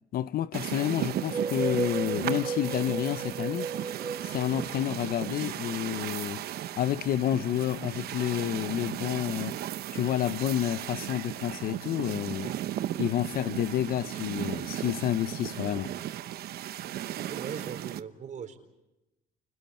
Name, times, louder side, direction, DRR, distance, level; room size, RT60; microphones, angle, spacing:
voice 1, 0.1-3.7 4.2-6.4 6.8-9.6 9.9-12.5 13.0-15.9, left 11 dB, 60° left, 0.8 m, -29 dB
sound 1, 0.5-18.0, right 12 dB, 65° right, 1.0 m, -36 dB
sound 2, 1.1-5.7, right 5 dB, 30° right, 1.2 m, -34 dB
voice 2, 17.3-18.6, right 7 dB, 45° right, 4.4 m, -39 dB
29.5 x 29.5 x 4.4 m
cardioid pair, 110°, 17 cm